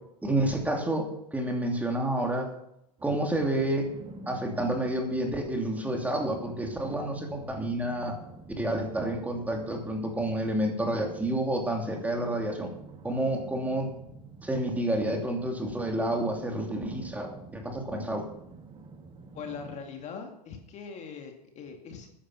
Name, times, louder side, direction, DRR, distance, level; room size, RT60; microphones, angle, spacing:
voice 1, 0.2-2.5 3.0-3.9 4.3-8.2 8.6-12.7 13.0-13.9 14.4-18.3, right 1 dB, 5° right, 2 dB, 2.9 m, -29 dB
sound 1, 3.0-19.8, right 3 dB, 25° right, 1.8 m, -47 dB
voice 2, 19.3-22.1, left 6 dB, 35° left, 4 dB, 2.3 m, -41 dB
13.5 x 10.0 x 5.8 m, 0.79 s
hypercardioid pair, 110°, 21 cm